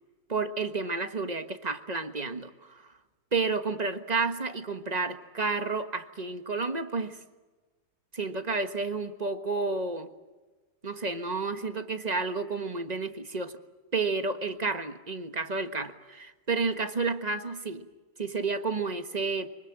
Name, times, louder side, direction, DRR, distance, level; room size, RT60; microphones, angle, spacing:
voice 1, 0.3-2.9 3.3-7.2 8.1-10.1 10.8-13.6 13.9-17.9 18.2-19.5, right 4 dB, 25° right, 9 dB, 1.4 m, -31 dB
25.0 x 23.5 x 7.7 m, 1.3 s
omnidirectional pair, 1.7 m